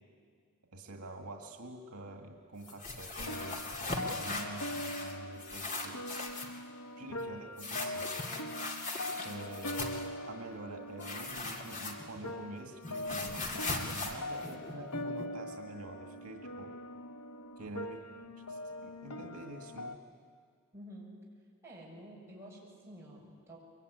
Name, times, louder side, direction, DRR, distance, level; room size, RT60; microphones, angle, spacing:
voice 1, 0.7-6.0 7.0-8.2 9.2-16.7 17.6-18.1 18.5-20.0, right 2 dB, 80° right, 3 dB, 2.1 m, -46 dB
sound 1, 2.6-5.1 5.4-6.6 7.6-10.1 11.0-12.3 12.6-15.2, left 3 dB, 35° left, 2.6 m, -39 dB
sound 2, 3.2-19.9, left 1 dB, 85° left, 1.1 m, -42 dB
voice 2, 20.7-21.1 21.6-23.6, equal, 10° right, -5 dB, 7.1 m, -50 dB
23.5 x 23.5 x 9.7 m, 2.1 s
head